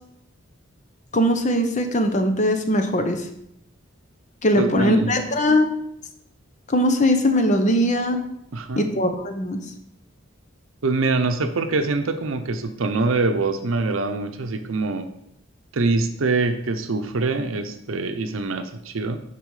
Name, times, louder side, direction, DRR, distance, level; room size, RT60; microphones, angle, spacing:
voice 1, 1.1-3.3 4.4-5.7 6.7-8.2 8.8-9.6, equal, 35° left, 6 dB, 0.9 m, -20 dB
voice 2, 4.6-5.2 8.5-8.9 10.8-15.1 15.7-19.2, right 3 dB, 85° right, 7 dB, 0.7 m, -24 dB
9.3 x 4.2 x 4.8 m, 0.78 s
head